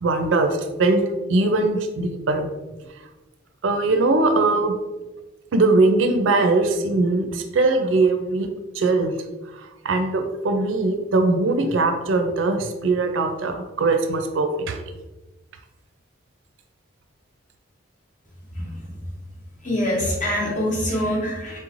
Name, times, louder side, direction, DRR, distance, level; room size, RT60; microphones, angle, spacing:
voice 1, 0.0-2.5 3.0-3.1 3.6-4.8 5.5-8.5 8.7-9.1 9.5-14.8, right 3 dB, 70° right, 6 dB, 0.4 m, -21 dB
voice 2, 19.6-21.6, equal, 40° left, -3 dB, 1.0 m, -24 dB
4.3 x 3.1 x 2.5 m, 1.1 s
head